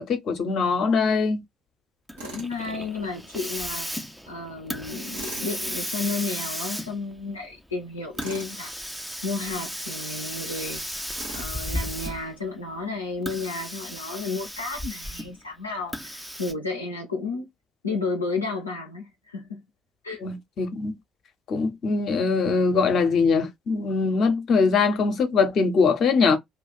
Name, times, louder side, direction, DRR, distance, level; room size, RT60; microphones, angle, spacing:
voice 1, 0.0-1.4 20.2-20.9 21.5-26.4, left 4 dB, 50° left, 0.7 m, -22 dB
Hiss, 2.1-12.4 13.1-15.4 15.9-16.5, equal, 5° right, 0.6 m, -35 dB
voice 2, 2.2-3.9 4.3-8.7 9.2-10.9 11.3-17.5 17.8-19.6 20.0-20.2, left 3 dB, 90° left, 0.5 m, -32 dB
Tools, 2.2-2.5 5.1-5.5 8.2-8.5 11.1-11.6, right 2 dB, 75° right, 1.0 m, -39 dB
2.4 x 2.2 x 3.9 m
figure-of-eight pair, 50°, 0 cm